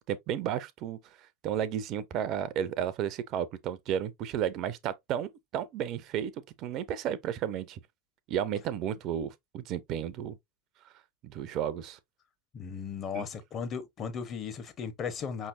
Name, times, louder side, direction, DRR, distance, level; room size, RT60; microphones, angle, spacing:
voice 1, 0.1-6.3 6.6-7.8 8.3-10.4 11.2-12.0 13.1-13.3, right 9 dB, 40° right, 0.5 m, -33 dB
voice 2, 12.5-15.5, left 6 dB, 30° left, 0.9 m, -36 dB
5.5 x 3.2 x 2.6 m
figure-of-eight pair, 85°, 0 cm